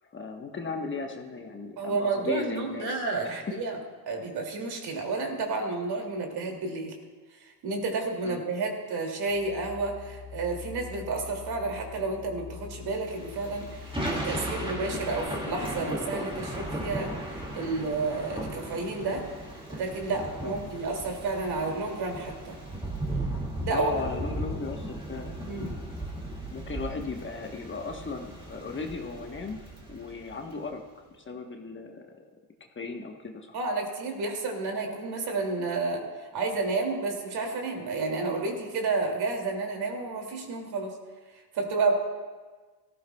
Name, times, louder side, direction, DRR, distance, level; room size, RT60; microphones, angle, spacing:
voice 1, 0.1-3.6 8.2-8.4 20.4-20.5 23.7-25.4 26.5-29.6 29.9-30.8 31.1-32.2 32.7-33.5, left 4 dB, 25° left, 3 dB, 1.2 m, -36 dB
voice 2, 1.8-3.8 4.1-6.9 7.4-19.3 19.7-22.5 23.6-23.9 25.5-25.7 33.5-41.0 41.5-41.9, right 3 dB, 55° right, 2 dB, 2.6 m, -31 dB
sound 1, 9.2-15.2, left 8 dB, 75° left, 2.1 m, -44 dB
Thunder / Rain, 13.0-30.6, right 1 dB, 10° right, 2.1 m, -36 dB
17.5 x 14.5 x 2.3 m, 1.4 s
supercardioid pair, 90°, 45 cm